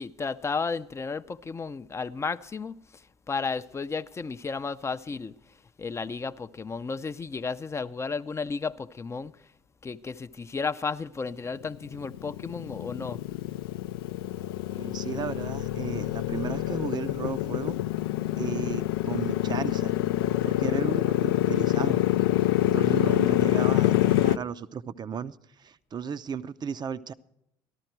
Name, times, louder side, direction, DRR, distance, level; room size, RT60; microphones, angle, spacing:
voice 1, 0.0-5.3 5.8-9.3 9.8-13.2, left 4 dB, 25° left, 0.5 m, -33 dB
Motorcycle, 11.7-24.4, left 15 dB, 80° left, 0.4 m, -26 dB
voice 2, 14.7-17.8 18.4-20.0 20.4-22.0 22.6-27.1, right 7 dB, 35° right, 0.6 m, -35 dB
13.0 x 13.0 x 4.5 m
hypercardioid pair, 65°, 12 cm